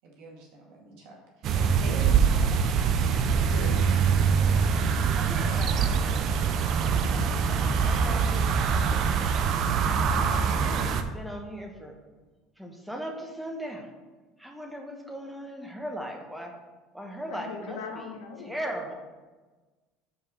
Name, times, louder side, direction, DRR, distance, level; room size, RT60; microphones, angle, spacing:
voice 1, 0.0-2.6, right 2 dB, 75° right, -2 dB, 2.1 m, -44 dB
sound 1, 1.4-11.0, right 6 dB, 50° right, 0.5 m, -24 dB
voice 2, 3.4-3.8 17.3-18.7, left 5 dB, 80° left, 3 dB, 1.1 m, -40 dB
voice 3, 5.1-6.3 7.4-9.1 9.8-12.0 12.6-13.9 14.4-16.6 16.9-18.1 18.4-18.9, equal, ahead, 2 dB, 1.1 m, -39 dB
5.5 x 4.7 x 5.8 m, 1.3 s
supercardioid pair, 110°, 0 cm